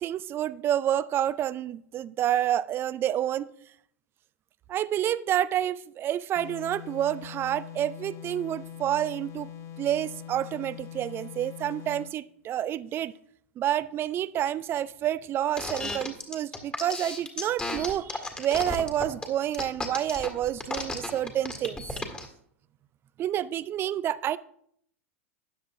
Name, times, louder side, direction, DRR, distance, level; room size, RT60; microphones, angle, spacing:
voice 1, 0.0-3.5 4.7-9.5 9.8-13.1 13.6-21.8 23.2-24.4, right 11 dB, 30° right, 18 dB, 0.4 m, -29 dB
sound 1, 6.3-12.2, left 10 dB, 35° left, 0.9 m, -43 dB
sound 2, 15.6-22.2, left 2 dB, 15° left, 1.8 m, -33 dB
13.5 x 9.4 x 2.6 m, 0.68 s
figure-of-eight pair, 90°, 7 cm